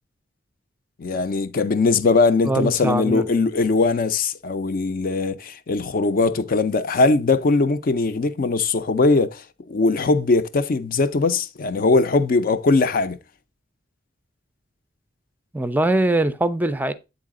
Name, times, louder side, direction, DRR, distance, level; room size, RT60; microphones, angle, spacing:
voice 1, 1.0-13.2, left 3 dB, 50° left, 0.5 m, -20 dB
voice 2, 2.4-3.3 15.5-16.9, right 1 dB, 10° right, 0.4 m, -22 dB
8.4 x 4.0 x 3.6 m
head